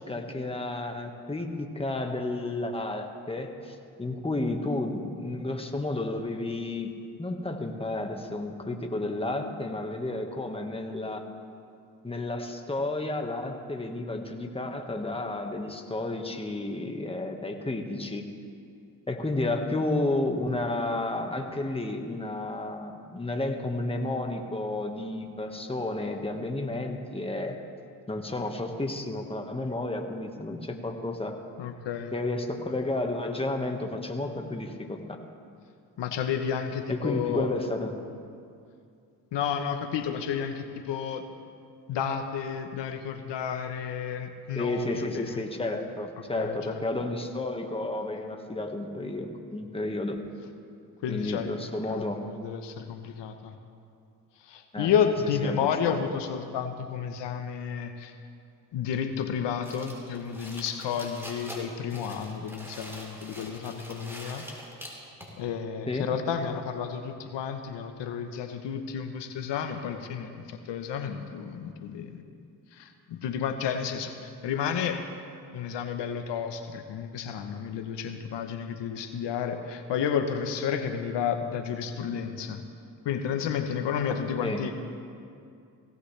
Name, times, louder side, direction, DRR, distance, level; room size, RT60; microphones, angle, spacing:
voice 1, 0.0-6.9 7.2-11.2 12.0-18.2 19.1-27.6 28.1-31.3 32.1-35.2 36.9-37.9 44.5-50.2 51.1-52.2 54.7-54.9 55.4-56.0 65.9-66.1 84.4-84.6, left 2 dB, 15° left, 3 dB, 1.6 m, -31 dB
voice 2, 31.6-32.1 36.0-37.5 39.3-41.2 41.9-45.4 46.4-46.8 51.0-51.5 51.9-53.5 54.4-58.2 58.7-64.4 65.4-72.2 72.7-75.0 75.5-82.6 83.0-84.7, left 7 dB, 80° left, 7 dB, 1.1 m, -31 dB
sound 1, 59.6-65.4, equal, 5° right, 3.7 m, -44 dB
17.5 x 17.0 x 3.3 m, 2.4 s
cardioid pair, 65°, 42 cm